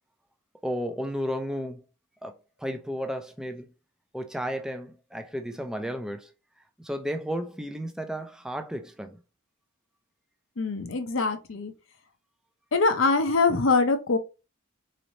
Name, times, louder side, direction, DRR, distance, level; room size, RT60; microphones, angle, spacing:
voice 1, 0.6-1.8 2.2-3.7 4.1-6.3 6.8-9.2, equal, 5° right, 0.4 m, -33 dB
voice 2, 10.6-11.7 12.7-14.2, left 3 dB, 65° left, 0.7 m, -23 dB
4.0 x 3.2 x 2.6 m
head